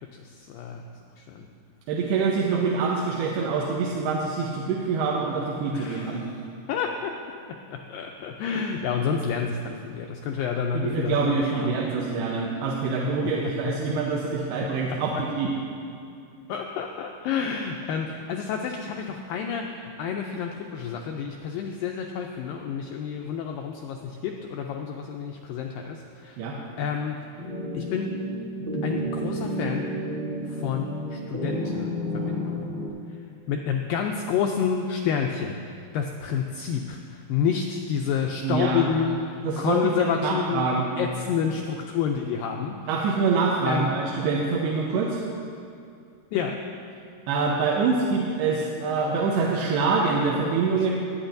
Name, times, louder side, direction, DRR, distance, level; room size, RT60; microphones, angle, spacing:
voice 1, 0.1-0.8 1.2-1.5 5.7-6.3 6.7-7.2 7.5-12.1 13.2-13.7 14.9-15.0 16.5-26.4 26.8-27.2 27.7-28.2 28.8-29.9 30.5-32.8 33.5-40.7 41.0-42.8 43.7-43.9 46.3-46.6 50.7-50.9, left 7 dB, 90° left, 2 dB, 2.0 m, -29 dB
voice 2, 1.9-6.2 10.7-15.5 26.4-26.6 38.4-38.8 39.4-39.9 40.2-40.9 42.9-45.2 47.3-50.9, right 4 dB, 85° right, -3 dB, 2.8 m, -25 dB
sound 1, 27.4-32.9, equal, 45° right, 0.6 m, -31 dB
21.0 x 8.9 x 2.6 m, 2.5 s
omnidirectional pair, 4.6 m